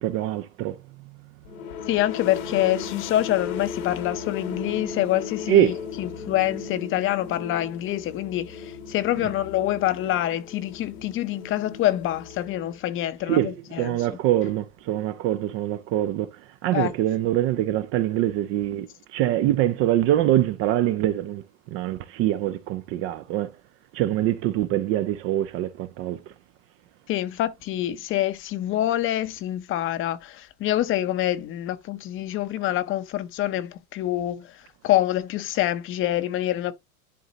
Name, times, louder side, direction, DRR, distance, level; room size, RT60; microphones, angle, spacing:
voice 1, 0.0-0.8 5.5-5.8 13.3-13.5 13.8-16.3 16.6-21.4 21.7-23.5 23.9-26.2, right 12 dB, 35° right, 0.4 m, -24 dB
sound 1, 1.4-13.0, left 6 dB, 85° left, 1.8 m, -37 dB
voice 2, 1.9-14.2 16.7-16.9 27.1-36.7, left 13 dB, 30° left, 0.7 m, -26 dB
11.0 x 3.9 x 2.8 m
supercardioid pair, 130°, 42 cm